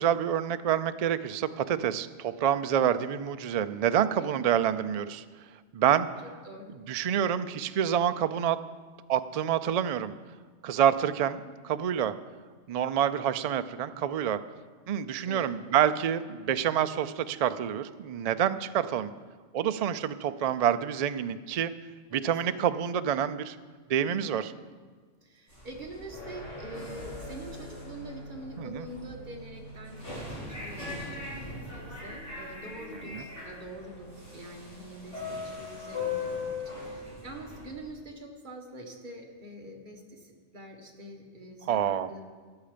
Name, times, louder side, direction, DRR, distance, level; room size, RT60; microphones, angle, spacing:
voice 1, 0.0-5.2 5.7-6.1 6.9-8.6 9.1-10.1 10.6-12.1 12.7-14.4 14.9-19.1 19.5-21.7 22.1-23.6 23.9-24.5 28.6-28.9 33.1-33.2 41.7-42.1, right 9 dB, 75° right, 11 dB, 0.3 m, -27 dB
voice 2, 4.2-4.5 6.4-6.7 15.3-15.5 22.4-22.6 24.0-24.4 25.2-36.5 36.8-42.3, right 1 dB, 40° right, 1 dB, 1.7 m, -45 dB
sound 1, 25.5-28.4 28.7-37.8, left 4 dB, 70° left, 5.2 m, -40 dB
sound 2, 26.1-37.1, equal, 85° left, 4.3 m, -48 dB
14.0 x 9.2 x 5.1 m, 1.5 s
omnidirectional pair, 1.2 m